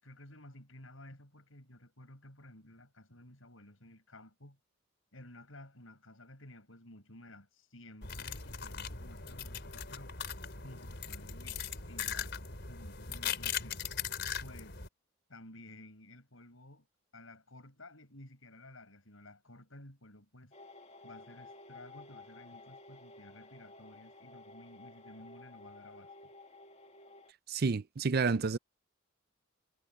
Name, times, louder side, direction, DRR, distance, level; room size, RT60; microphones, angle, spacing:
voice 1, 0.0-4.6 5.1-10.1 10.6-13.8 14.4-14.8 15.3-16.9 17.1-20.5 21.0-26.1, left 1 dB, 75° left, 6.1 m, -54 dB
sound 1, 8.0-14.9, left 7 dB, 55° left, 4.7 m, -39 dB
sound 2, 20.5-27.3, left 2 dB, 30° left, 2.0 m, -53 dB
voice 2, 27.5-28.6, right 4 dB, 50° right, 0.5 m, -30 dB
head